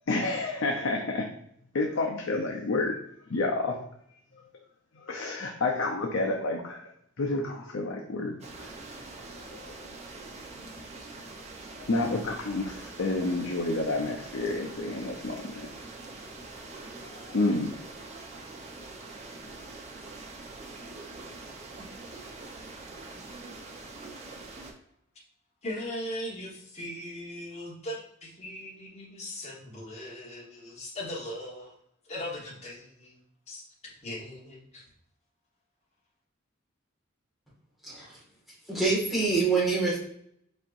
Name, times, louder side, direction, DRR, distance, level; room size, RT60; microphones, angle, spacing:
voice 1, 0.1-1.3 1.7-3.0 3.3-3.8 4.9-6.8 7.2-8.7 9.4-9.8 11.7-15.7 16.6-16.7 17.0-17.7, left 2 dB, 70° left, 0 dB, 0.6 m, -30 dB
sound 1, 8.4-24.7, right 3 dB, 35° right, 0.7 m, -44 dB
voice 2, 25.6-31.7 32.0-33.2 33.5-34.8, left 1 dB, 35° left, -5 dB, 1.3 m, -39 dB
voice 3, 37.8-38.2 38.7-40.0, right 4 dB, ahead, -6 dB, 1.6 m, -25 dB
4.6 x 4.3 x 2.5 m, 0.71 s
head